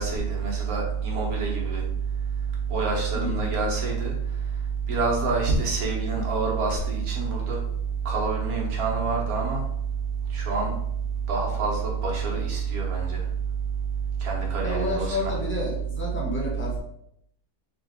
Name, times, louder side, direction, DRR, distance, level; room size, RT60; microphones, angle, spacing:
voice 1, 0.0-1.8 2.7-4.1 4.9-7.6 8.1-9.6 10.3-10.7 11.3-13.2 14.2-15.3, right 4 dB, 65° right, -2 dB, 1.6 m, -26 dB
voice 2, 3.1-3.5 14.6-16.8, left 2 dB, 10° left, -5 dB, 1.1 m, -30 dB
3.9 x 3.3 x 3.6 m, 0.74 s
omnidirectional pair, 1.7 m